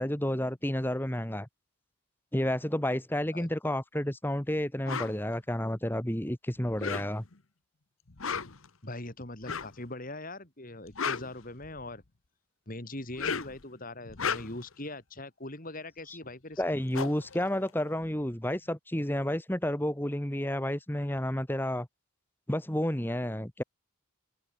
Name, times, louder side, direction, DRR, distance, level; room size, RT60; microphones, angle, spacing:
voice 1, 0.0-1.5 2.3-7.2 16.1-16.2 16.6-21.9 22.5-23.6, left 1 dB, 10° left, 1.4 m, -31 dB
sound 1, 4.9-5.1 6.7-7.4 8.1-8.7 9.4-9.8 10.7-12.0 13.0-13.6 14.0-14.7 16.3-16.4 16.6-18.3, left 6 dB, 65° left, 1.2 m, -35 dB
voice 2, 8.8-12.0 12.7-16.6, left 2 dB, 40° left, 3.2 m, -41 dB
open air
head